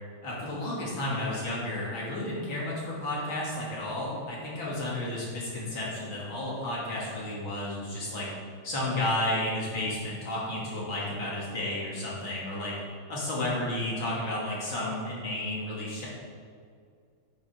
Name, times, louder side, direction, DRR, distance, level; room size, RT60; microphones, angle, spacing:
voice 1, 0.2-8.3 8.6-12.7 13.1-16.1, left 1 dB, 65° left, -5 dB, 3.2 m, -32 dB
8.7 x 7.5 x 5.2 m, 2.2 s
omnidirectional pair, 2.4 m